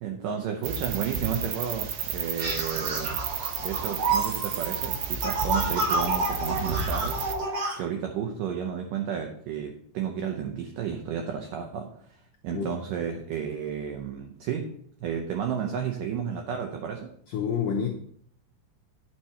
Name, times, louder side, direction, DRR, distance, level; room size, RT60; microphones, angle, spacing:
voice 1, 0.0-3.1 3.6-14.7 15.0-17.1, right 7 dB, 90° right, 3 dB, 1.9 m, -32 dB
sound 1, 0.6-7.3, right 7 dB, 75° right, 2.5 m, -32 dB
sound 2, 2.4-7.8, right 2 dB, 50° right, 4.2 m, -29 dB
voice 2, 17.3-17.9, left 7 dB, 80° left, 0 dB, 1.8 m, -28 dB
10.0 x 6.1 x 4.2 m, 0.64 s
omnidirectional pair, 4.9 m